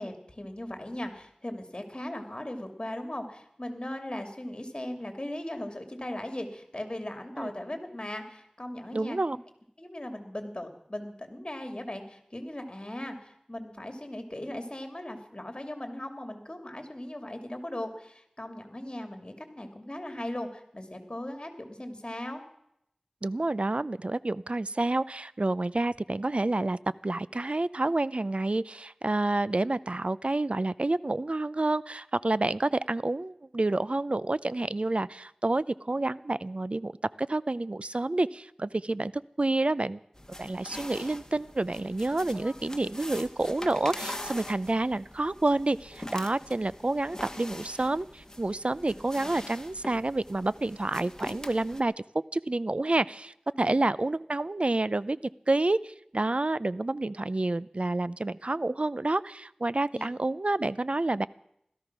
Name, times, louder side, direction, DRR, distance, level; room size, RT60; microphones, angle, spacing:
voice 1, 0.0-9.2 9.8-22.4 42.3-42.5 53.5-53.8 59.9-60.1, left 1 dB, 40° left, 6 dB, 2.6 m, -38 dB
voice 2, 8.9-9.4 23.2-36.9 37.2-39.1 39.4-40.0 40.4-51.9 52.3-55.2 55.5-61.3, right 2 dB, 60° right, 17 dB, 0.5 m, -29 dB
sound 1, 40.1-51.8, left 1 dB, 25° left, 1.5 m, -43 dB
17.0 x 13.5 x 6.1 m, 0.75 s
wide cardioid pair, 40°, 2 cm